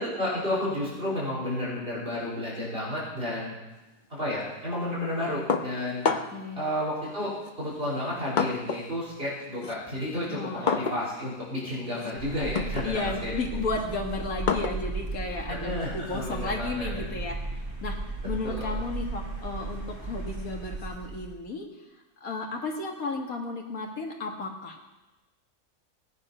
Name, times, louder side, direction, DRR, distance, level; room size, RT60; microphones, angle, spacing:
voice 1, 0.0-3.6 4.1-6.1 6.5-13.3 15.5-17.1 18.4-18.8, left 1 dB, 40° right, -7 dB, 4.5 m, -31 dB
sound 1, 5.5-6.5 7.4-9.0 9.3-16.6, left 5 dB, 40° left, 0.8 m, -32 dB
voice 2, 6.1-6.6 10.3-10.8 12.8-17.4 17.8-21.7 22.2-24.9, left 3 dB, 85° left, 2 dB, 2.2 m, -34 dB
sound 2, 12.2-21.3, right 3 dB, 20° right, 2.8 m, -36 dB
17.5 x 9.6 x 5.5 m, 1.1 s
omnidirectional pair, 1.5 m